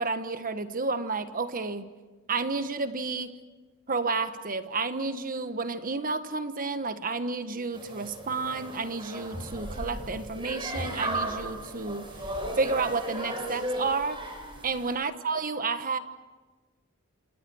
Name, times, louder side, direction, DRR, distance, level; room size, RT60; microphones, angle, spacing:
voice 1, 0.0-1.9 2.3-3.3 3.9-14.2 14.6-16.0, right 4 dB, 40° right, 10 dB, 1.3 m, -31 dB
sound 1, 7.7-14.9, right 1 dB, 25° right, 6.3 m, -35 dB
29.0 x 28.0 x 6.3 m, 1.3 s
head